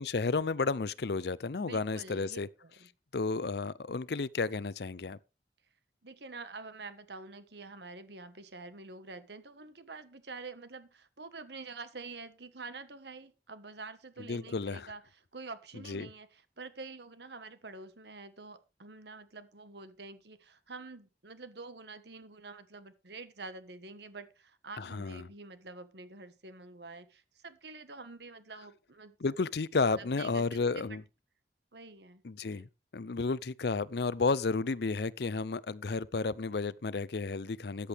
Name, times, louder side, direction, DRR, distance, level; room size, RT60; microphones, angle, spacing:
voice 1, 0.0-2.5 3.1-5.2 14.3-14.9 15.9-16.1 24.8-25.3 29.2-31.0 32.2-37.9, left 4 dB, 65° left, 0.6 m, -32 dB
voice 2, 1.6-2.9 6.0-15.0 15.3-29.1 29.7-31.0 31.7-32.7, right 3 dB, 70° right, 1.4 m, -47 dB
14.0 x 10.0 x 3.5 m
head